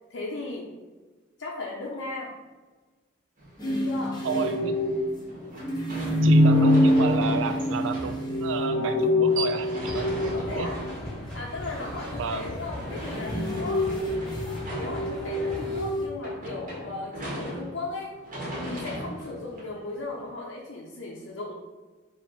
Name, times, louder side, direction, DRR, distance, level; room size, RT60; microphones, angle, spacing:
voice 1, 0.1-0.7 1.4-2.3 3.6-4.2 10.3-10.8 11.2-13.8 14.8-18.1 18.6-21.5, left 3 dB, 80° left, -4 dB, 0.6 m, -36 dB
sound 1, 3.4-20.3, right 1 dB, 45° right, 1.3 m, -39 dB
sound 2, 3.6-10.9 12.8-16.1, left 1 dB, 20° left, 0.8 m, -25 dB
voice 2, 4.2-4.8 6.2-10.7 12.2-12.5, right 5 dB, 80° right, 7 dB, 0.4 m, -32 dB
sound 3, 9.8-15.8, equal, 5° left, 1.1 m, -38 dB
4.3 x 2.9 x 4.0 m, 1.3 s
head